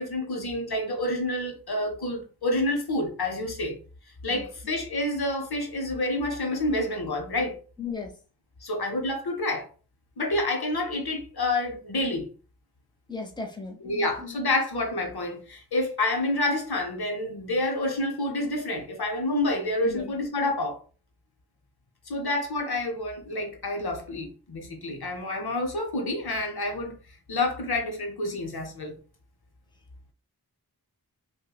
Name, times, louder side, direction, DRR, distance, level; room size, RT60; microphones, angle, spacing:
voice 1, 0.0-3.8 4.2-7.6 8.6-9.7 10.2-12.3 13.8-20.8 22.1-26.9 27.3-29.0, left 2 dB, 80° left, 0.8 m, -28 dB
voice 2, 7.8-8.1 13.1-14.3 19.8-20.1, left 5 dB, 10° left, 0.8 m, -36 dB
5.2 x 2.1 x 2.2 m
wide cardioid pair, 45°, 38 cm